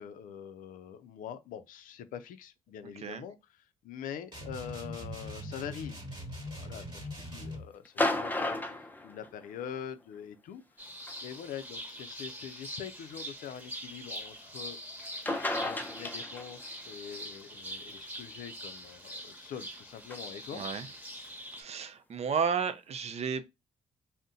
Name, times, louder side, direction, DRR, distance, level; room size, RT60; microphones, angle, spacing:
voice 1, 0.0-6.0 6.5-10.6 11.2-14.8 15.6-20.7, left 8 dB, 75° left, 0.4 m, -44 dB
sound 1, 4.3-7.7, equal, 35° right, 1.3 m, -41 dB
sound 2, 7.9-9.8 11.1-11.2 12.1-12.2 15.0-15.1 15.3-16.7 20.1-20.2, left 2 dB, 15° left, 0.5 m, -32 dB
sound 3, 10.8-21.6, equal, 10° right, 1.1 m, -43 dB
voice 2, 20.5-20.9 21.6-23.6, right 6 dB, 50° right, 0.5 m, -33 dB
2.6 x 2.1 x 3.7 m
cardioid pair, 75°, 14 cm